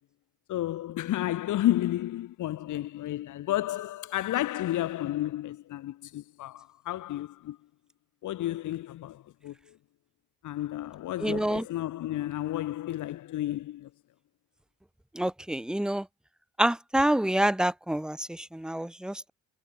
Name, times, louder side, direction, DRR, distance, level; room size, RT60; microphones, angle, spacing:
voice 1, 0.5-7.6 8.2-9.8 10.4-13.9, left 14 dB, 80° left, 2.3 m, -31 dB
voice 2, 11.2-11.6 15.1-16.0 16.6-19.3, right 1 dB, ahead, 0.7 m, -27 dB
cardioid pair, 90°, 30 cm